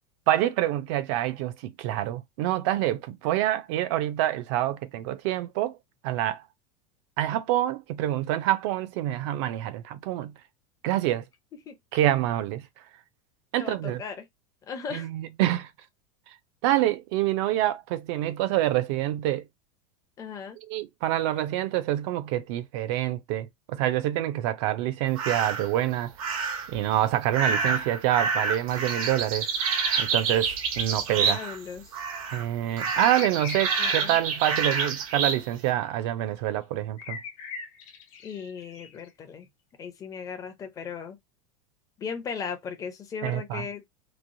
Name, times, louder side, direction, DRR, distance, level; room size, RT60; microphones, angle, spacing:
voice 1, 0.3-5.8 6.0-6.4 7.2-10.3 10.8-11.2 11.9-12.7 13.5-14.0 14.9-15.7 16.6-19.5 20.7-26.4 26.7-29.5 30.0-31.4 32.3-37.2 43.2-43.6, right 13 dB, 55° right, 0.5 m, -26 dB
voice 2, 13.6-14.3 14.6-15.1 20.2-20.6 27.7-27.8 31.1-32.0 33.8-34.2 38.2-39.5 39.8-41.2 42.0-43.9, left 6 dB, 20° left, 0.5 m, -37 dB
sound 1, 25.1-25.7 26.2-26.8 27.3-31.7 31.9-32.4 32.8-35.4, right 5 dB, 85° right, 0.9 m, -28 dB
sound 2, 32.9-34.9 35.6-35.7 37.0-39.1, left 5 dB, 65° left, 0.8 m, -40 dB
3.0 x 2.0 x 2.6 m
supercardioid pair, 155°, 18 cm